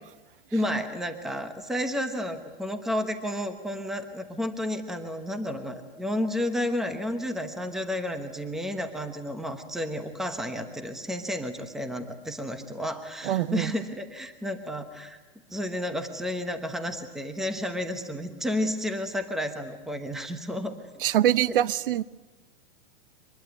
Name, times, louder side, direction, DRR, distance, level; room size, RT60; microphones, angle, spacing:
voice 1, 0.5-15.2 15.5-20.7, left 1 dB, ahead, 1.0 m, -31 dB
voice 2, 13.2-13.7 21.0-22.0, right 12 dB, 60° right, 0.8 m, -24 dB
24.5 x 21.0 x 9.4 m
supercardioid pair, 170°, 31 cm